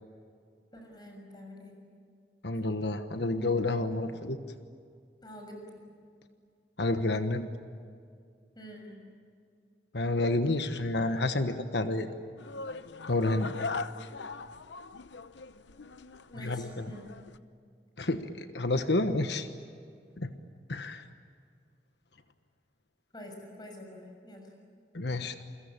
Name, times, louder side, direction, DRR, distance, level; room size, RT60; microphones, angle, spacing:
voice 1, 0.7-1.8 5.2-5.7 8.5-9.1 16.3-17.1 23.1-24.5, equal, 25° left, 2 dB, 6.7 m, -46 dB
voice 2, 2.4-4.4 6.8-7.5 9.9-12.1 13.1-13.5 16.4-16.9 18.0-19.5 20.2-20.3 20.7-21.0 24.9-25.4, left 2 dB, 75° left, 8 dB, 1.3 m, -29 dB
sound 1, 12.4-17.4, left 4 dB, 90° left, 0.9 m, -40 dB
29.0 x 23.5 x 8.8 m, 2.2 s
head